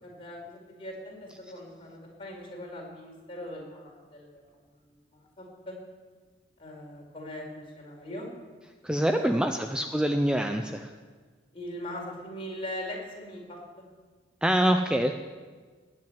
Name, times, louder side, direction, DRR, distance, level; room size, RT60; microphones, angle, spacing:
voice 1, 0.0-4.5 4.8-5.8 6.6-8.3 9.1-9.5 11.5-13.6, left 1 dB, 30° left, -2 dB, 4.9 m, -41 dB
voice 2, 8.8-10.9 14.4-15.1, equal, 5° right, 5 dB, 0.6 m, -25 dB
20.0 x 7.7 x 9.4 m, 1.5 s
head